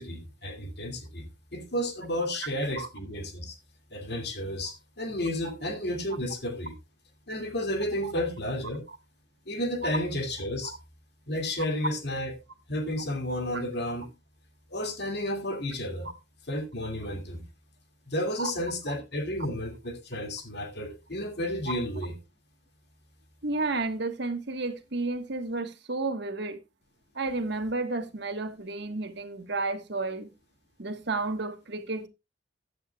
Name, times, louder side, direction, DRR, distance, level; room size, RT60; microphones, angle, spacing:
voice 1, 0.0-3.6 3.9-6.7 7.3-8.8 9.5-10.7 11.3-12.3 12.7-14.1 14.7-16.1 16.5-17.4 18.1-22.1, left 1 dB, 60° left, 2.4 m, -32 dB
voice 2, 23.4-26.6 27.1-30.3 30.8-32.1, right 3 dB, 60° right, 1.4 m, -32 dB
15.0 x 9.4 x 2.3 m
head